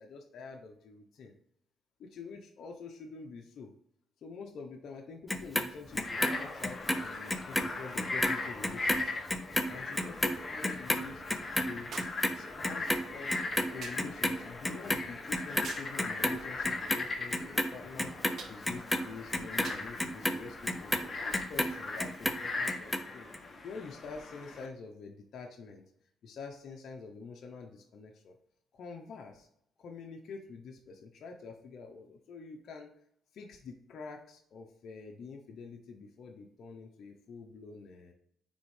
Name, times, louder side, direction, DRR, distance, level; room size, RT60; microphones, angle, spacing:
voice 1, 0.0-1.3 2.0-3.7 4.2-11.2 11.6-12.0 12.3-13.3 13.7-23.3 23.6-25.8 26.2-28.4 28.7-29.5 29.8-33.0 33.3-38.1, left 4 dB, 65° left, 2 dB, 0.8 m, -47 dB
Clock, 5.3-7.7 8.0-14.4 14.6-15.7 16.0-17.0 17.3-21.7 22.0-23.0 23.3-23.4, left 1 dB, 10° left, 0.7 m, -31 dB
Frog, 5.9-24.7, left 3 dB, 35° left, 1.2 m, -39 dB
sound 1, 11.9-12.3 13.8-14.1 15.6-16.0 18.4-18.6 19.6-19.9 21.0-21.1, right 5 dB, 60° right, 0.9 m, -45 dB
9.4 x 3.5 x 3.3 m, 0.72 s
cardioid pair, 90°, 0 cm